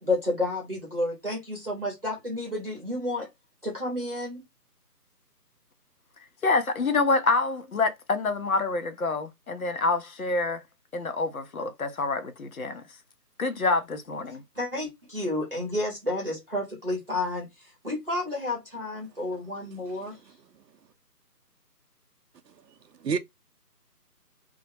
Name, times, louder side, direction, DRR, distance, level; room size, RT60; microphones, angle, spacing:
voice 1, 0.0-3.3 3.6-4.4 14.5-20.2, left 2 dB, 35° right, 0.8 m, -31 dB
voice 2, 6.4-10.6 10.9-12.8 13.4-14.4, left 3 dB, 60° left, 0.6 m, -27 dB
voice 3, 22.5-23.2, right 5 dB, 80° right, 0.6 m, -32 dB
2.2 x 2.1 x 2.6 m
figure-of-eight pair, 165°, 49 cm